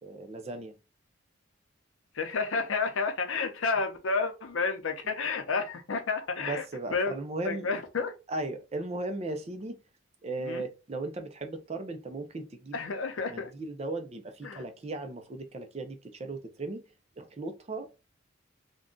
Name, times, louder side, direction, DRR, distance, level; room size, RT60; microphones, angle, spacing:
voice 1, 0.0-0.7 6.4-7.7 8.3-9.8 10.2-12.8 13.3-16.8 17.2-18.0, right 2 dB, 30° right, 0.4 m, -37 dB
voice 2, 2.1-6.6 6.9-7.2 7.4-8.1 10.4-10.6 12.7-13.5 14.4-14.6, left 4 dB, 75° left, 0.6 m, -30 dB
2.5 x 2.2 x 3.6 m
head